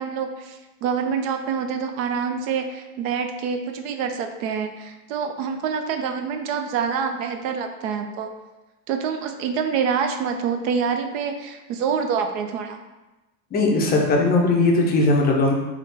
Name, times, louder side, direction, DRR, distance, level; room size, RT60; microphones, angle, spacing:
voice 1, 0.0-8.3 8.9-12.8, right 6 dB, 55° right, 6 dB, 0.6 m, -26 dB
voice 2, 13.5-15.5, left 2 dB, 20° left, 0 dB, 0.5 m, -19 dB
3.4 x 2.5 x 4.0 m, 1.1 s
hypercardioid pair, 110°, 48 cm